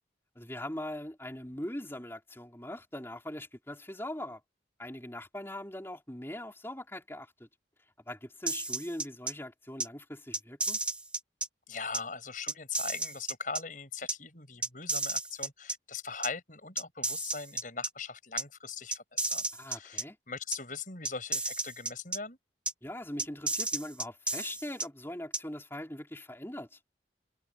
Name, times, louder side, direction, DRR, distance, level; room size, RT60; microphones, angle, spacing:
voice 1, 0.4-4.4 4.8-7.5 8.1-10.8 19.5-20.2 22.8-26.8, left 1 dB, 15° left, 3.9 m, -41 dB
sound 1, 8.5-9.3 9.8-9.9 10.3-11.5 11.9-12.0 12.5-13.6 14.1-14.2 14.6-15.7 16.2-16.3 16.8-17.9 18.4-18.5 18.9-20.0 20.5-20.6 21.0-22.2 22.7-22.8 23.2-24.9 25.3-25.4, right 2 dB, 5° right, 0.7 m, -32 dB
voice 2, 11.7-19.4 19.7-22.4, left 5 dB, 45° left, 7.0 m, -40 dB
head